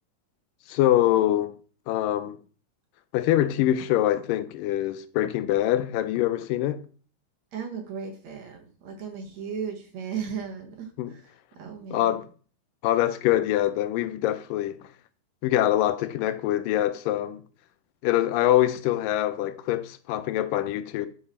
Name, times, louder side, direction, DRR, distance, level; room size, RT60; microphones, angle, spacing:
voice 1, 0.7-1.5 1.9-2.4 3.1-6.8 11.0-11.1 11.9-12.2 12.8-14.8 15.4-17.4 18.0-21.1, left 13 dB, 80° left, 2.2 m, -24 dB
voice 2, 7.5-12.2, right 7 dB, 60° right, 2.3 m, -36 dB
10.5 x 4.9 x 4.2 m
omnidirectional pair, 4.0 m